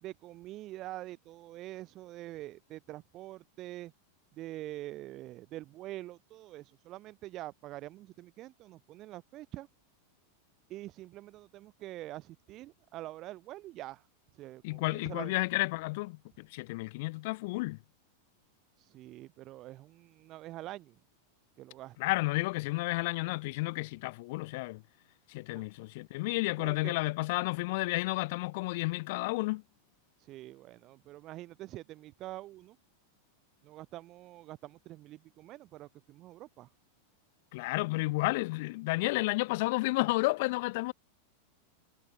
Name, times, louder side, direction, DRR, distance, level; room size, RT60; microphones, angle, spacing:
voice 1, 0.0-3.9 4.4-9.7 10.7-14.1 14.3-15.3 18.8-21.0 21.6-22.0 25.5-25.7 26.6-26.9 30.2-32.8 33.6-36.7, right 16 dB, 35° right, 1.4 m, -45 dB
voice 2, 14.6-17.8 22.0-24.8 25.3-29.6 37.5-40.9, left 23 dB, 50° left, 0.7 m, -31 dB
figure-of-eight pair, 90°, 0 cm